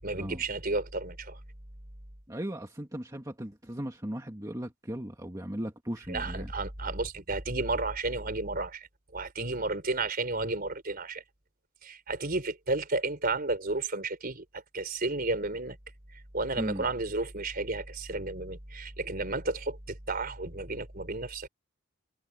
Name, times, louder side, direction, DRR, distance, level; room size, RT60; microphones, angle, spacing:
voice 1, 0.0-1.4 6.1-11.2 11.8-15.8 16.1-21.5, right 3 dB, 45° right, 4.2 m, -32 dB
voice 2, 2.3-6.5 16.6-16.9, equal, 15° right, 1.9 m, -37 dB
head